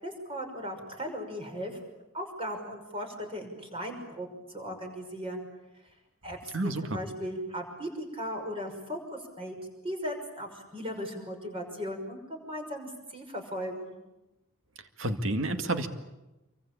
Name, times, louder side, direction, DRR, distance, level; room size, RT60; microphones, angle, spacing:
voice 1, 0.0-1.8 2.1-4.3 4.5-5.5 6.2-9.6 9.8-14.0, equal, 25° right, 4 dB, 5.9 m, -37 dB
voice 2, 6.5-7.0 15.0-15.9, right 2 dB, 65° right, 8 dB, 2.1 m, -29 dB
27.5 x 24.0 x 8.8 m, 0.97 s
head